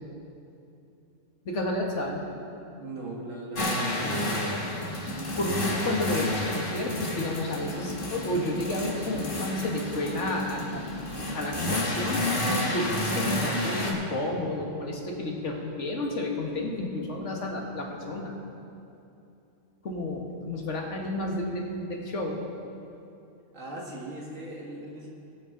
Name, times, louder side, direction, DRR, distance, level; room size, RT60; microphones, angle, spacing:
voice 1, 1.5-2.2 5.4-10.9 11.3-12.2 12.7-18.4 19.8-22.4, left 1 dB, 70° left, 0 dB, 1.8 m, -31 dB
voice 2, 2.8-4.5 23.5-25.1, right 1 dB, 85° right, -2 dB, 2.2 m, -38 dB
sound 1, 3.6-13.9, left 1 dB, 45° left, 1.7 m, -30 dB
19.5 x 8.6 x 3.8 m, 2.7 s
omnidirectional pair, 1.3 m